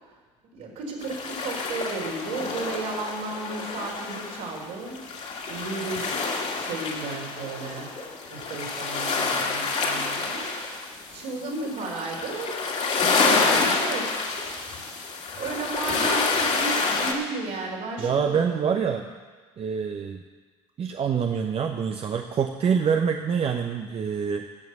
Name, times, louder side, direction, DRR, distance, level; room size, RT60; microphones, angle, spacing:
voice 1, 0.5-5.0 5.5-7.9 8.2-12.6 13.2-14.2 15.4-19.0, right 3 dB, 65° right, -2 dB, 4.1 m, -34 dB
sound 1, 1.0-17.1, left 4 dB, 50° left, 2.4 m, -28 dB
voice 2, 18.0-19.0 19.6-20.2 20.8-24.4, right 7 dB, 40° right, 4 dB, 0.9 m, -25 dB
14.5 x 6.2 x 8.1 m, 1.4 s
hypercardioid pair, 65°, 15 cm